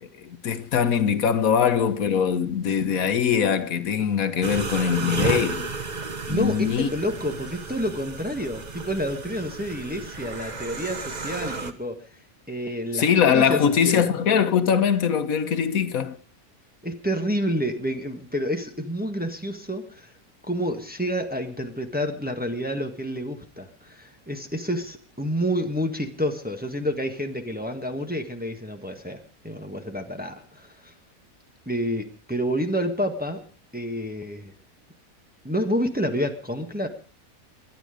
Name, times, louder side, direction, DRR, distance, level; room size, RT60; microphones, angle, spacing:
voice 1, 0.0-5.7 6.3-6.9 12.9-16.2, left 7 dB, 75° left, 1.5 m, -22 dB
sound 1, 4.4-11.7, right 4 dB, 35° right, 1.1 m, -32 dB
voice 2, 6.3-12.0 12.5-13.1 13.3-14.1 16.8-20.1 20.4-29.2 29.4-30.9 31.6-33.4 33.7-34.5 35.4-36.9, equal, 5° right, 1.4 m, -29 dB
22.5 x 9.5 x 5.0 m
omnidirectional pair, 1.5 m